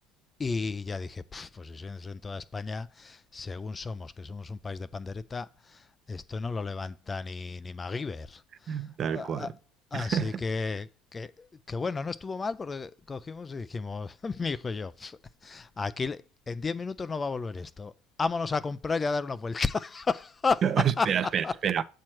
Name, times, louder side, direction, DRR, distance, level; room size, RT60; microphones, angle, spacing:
voice 1, 0.4-9.5 9.9-17.9 18.2-20.6 21.0-21.1 21.4-21.5, left 4 dB, 25° left, 0.4 m, -33 dB
voice 2, 8.7-9.5 9.9-10.3 20.6-21.8, right 8 dB, 45° right, 0.5 m, -28 dB
7.4 x 4.6 x 4.5 m
supercardioid pair, 95°, 0 cm